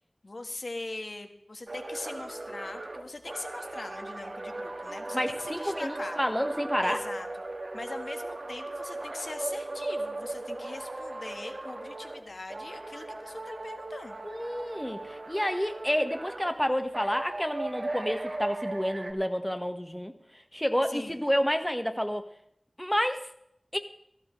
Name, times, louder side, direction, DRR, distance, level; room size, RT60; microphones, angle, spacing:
voice 1, 0.2-6.2 6.8-7.3 7.7-14.2 20.9-21.2, left 2 dB, 80° left, 6 dB, 1.5 m, -41 dB
sound 1, 1.7-12.2 12.5-16.5 16.9-19.1, right 2 dB, 80° right, 1.6 m, -37 dB
voice 2, 5.1-7.0 14.2-22.2 22.8-23.3 23.7-23.8, equal, 10° left, 7 dB, 1.4 m, -29 dB
17.5 x 14.0 x 3.2 m, 0.72 s
wide cardioid pair, 50°, 0 cm